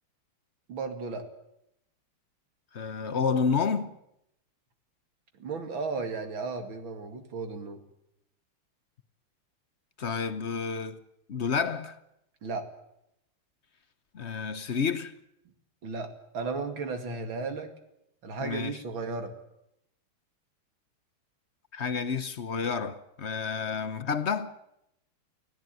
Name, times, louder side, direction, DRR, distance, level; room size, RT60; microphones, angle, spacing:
voice 1, 0.7-1.3 5.4-7.8 12.4-12.7 15.8-17.7 18.2-19.3, right 4 dB, 65° right, 3.0 m, -34 dB
voice 2, 2.7-4.0 10.0-11.0 11.3-12.0 14.1-15.1 18.4-18.8 21.7-24.5, left 5 dB, 45° left, 0.9 m, -30 dB
25.0 x 16.5 x 9.2 m
omnidirectional pair, 2.4 m